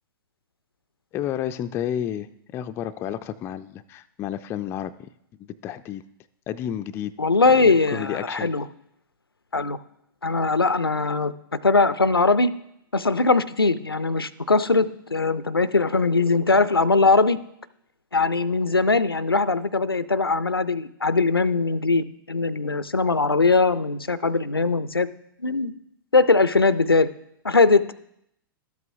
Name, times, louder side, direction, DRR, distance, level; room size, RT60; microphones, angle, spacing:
voice 1, 1.1-2.3 2.5-5.1 5.4-6.0 6.5-7.1 7.5-8.5, left 10 dB, 20° left, 11 dB, 0.3 m, -31 dB
voice 2, 7.2-8.7 9.5-9.8 10.2-12.5 12.9-17.4 18.1-25.1 25.4-25.7 26.1-27.1 27.4-27.9, left 3 dB, 90° left, 16 dB, 0.4 m, -21 dB
12.5 x 8.1 x 2.6 m, 0.76 s
figure-of-eight pair, 105°, 12 cm